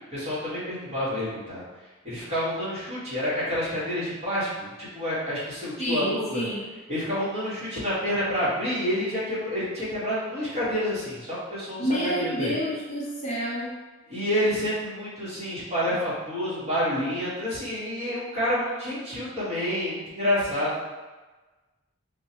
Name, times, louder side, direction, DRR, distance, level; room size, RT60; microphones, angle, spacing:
voice 1, 0.1-1.6 2.0-6.4 6.9-11.8 12.2-12.5 14.1-20.8, equal, 30° right, -10 dB, 1.5 m, -28 dB
voice 2, 5.8-6.7 11.8-13.7, equal, 35° left, -6 dB, 0.7 m, -29 dB
4.4 x 2.2 x 2.9 m, 1.2 s
head